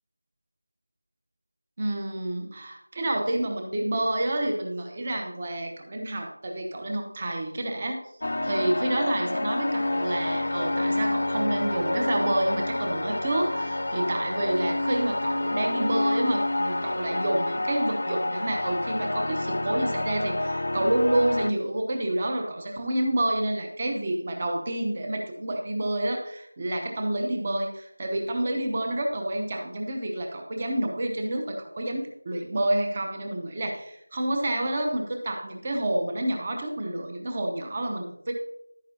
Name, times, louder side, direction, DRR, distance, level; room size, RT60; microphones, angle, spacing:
voice 1, 1.8-8.0 8.4-38.3, right 1 dB, 20° right, 2 dB, 0.8 m, -28 dB
sound 1, 8.2-21.5, left 1 dB, 50° left, 0.4 m, -28 dB
11.0 x 9.1 x 2.8 m, 0.78 s
figure-of-eight pair, 175°, 0 cm